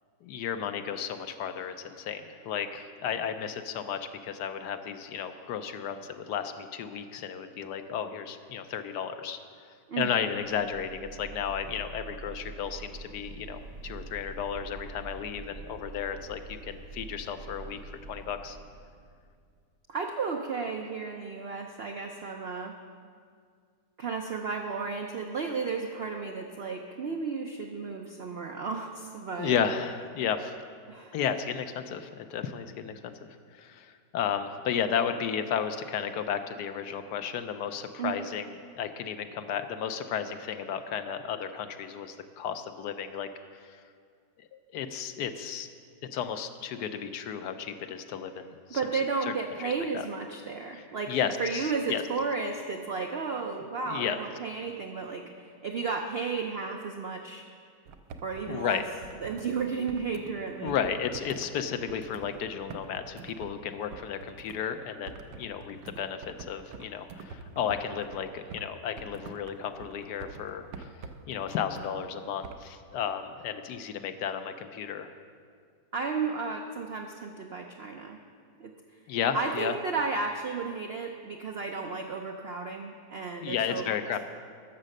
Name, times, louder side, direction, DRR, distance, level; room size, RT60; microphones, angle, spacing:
voice 1, 0.2-9.4 10.0-18.6 29.4-30.5 31.1-33.1 33.5-43.8 44.5-45.7 46.1-48.8 49.3-49.4 49.6-50.0 50.7-52.0 53.8-54.2 58.5-58.9 60.6-70.9 71.3-75.1 79.1-79.7 83.4-84.2, left 8 dB, 75° left, 9 dB, 1.2 m, -33 dB
voice 2, 9.9-10.2 19.9-22.7 24.0-29.6 30.9-31.2 38.0-38.2 48.7-55.2 55.6-57.4 58.2-58.8 59.2-60.8 75.9-78.2 78.6-78.7 79.3-83.9, right 4 dB, 70° right, 3 dB, 0.6 m, -33 dB
sound 1, 10.4-19.6, right 3 dB, 40° right, 0.9 m, -45 dB
sound 2, 57.9-60.3 60.7-64.6 65.1-68.7 69.0-71.9 72.4-72.6, right 4 dB, 85° right, 1.3 m, -46 dB
11.5 x 7.3 x 6.5 m, 2.1 s
omnidirectional pair, 1.8 m